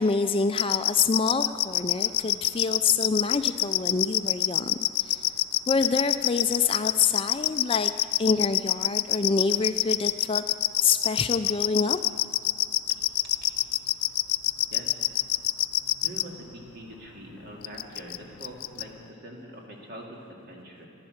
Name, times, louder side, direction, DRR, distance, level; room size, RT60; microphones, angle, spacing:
voice 1, 0.0-5.2 5.7-7.9 8.2-10.4 10.8-12.0, left 4 dB, 25° left, 9 dB, 0.3 m, -26 dB
sound 1, 0.6-16.2 17.6-18.2 18.4-18.8, left 15 dB, 90° left, 0.4 m, -25 dB
voice 2, 16.0-20.9, right 1 dB, 50° right, -1 dB, 2.2 m, -43 dB
15.0 x 12.0 x 6.4 m, 2.8 s
head